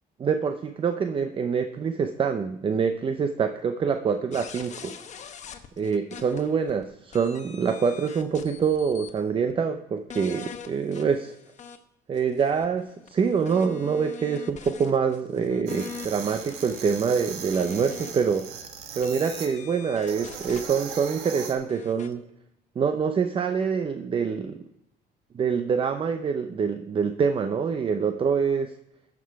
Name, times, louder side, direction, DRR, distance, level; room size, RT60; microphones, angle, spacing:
voice 1, 0.2-5.0 5.8-11.4 12.1-18.5 19.0-22.2 22.8-24.6 25.3-28.7, right 6 dB, 30° right, 8 dB, 0.6 m, -25 dB
sound 1, 4.3-6.8 7.1-9.2 9.5-9.6 10.1-11.8 12.2-18.4 19.0-20.7 21.7-22.1, left 7 dB, 45° left, 1.0 m, -43 dB
sound 2, 15.7-19.5 20.0-21.5, right 7 dB, 85° right, 1.4 m, -39 dB
13.5 x 6.1 x 4.6 m, 0.82 s
cardioid pair, 110°, 17 cm